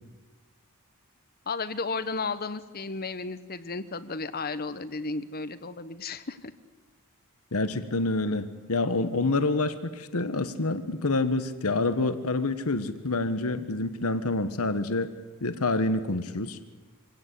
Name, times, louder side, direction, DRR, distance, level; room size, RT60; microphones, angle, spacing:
voice 1, 1.5-6.5, left 4 dB, 45° left, 13 dB, 1.1 m, -33 dB
voice 2, 7.5-15.1 15.4-16.6, left 2 dB, 80° left, 11 dB, 1.3 m, -27 dB
25.5 x 17.0 x 8.4 m, 1.3 s
head